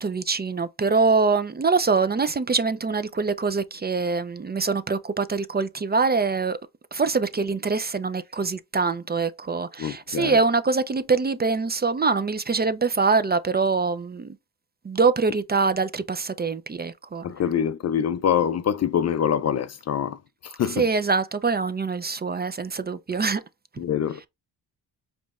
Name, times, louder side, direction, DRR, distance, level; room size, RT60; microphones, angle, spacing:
voice 1, 0.0-6.6 6.9-14.4 14.8-17.2 20.7-23.4, right 4 dB, 25° right, 0.5 m, -24 dB
voice 2, 9.8-10.4 17.2-20.9 23.8-24.2, left 8 dB, 40° left, 0.4 m, -25 dB
5.1 x 3.1 x 2.4 m
supercardioid pair, 60°, 42 cm